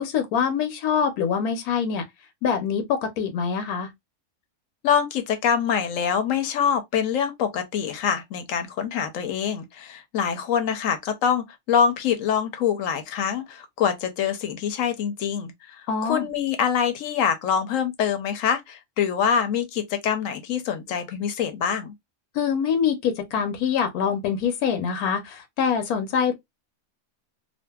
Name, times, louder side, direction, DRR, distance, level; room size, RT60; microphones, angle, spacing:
voice 1, 0.0-2.0 2.4-3.9 15.9-16.3 22.3-26.3, left 7 dB, 90° left, 1.1 m, -24 dB
voice 2, 4.8-21.9, left 7 dB, 70° left, 0.9 m, -25 dB
2.6 x 2.4 x 2.2 m
omnidirectional pair, 1.5 m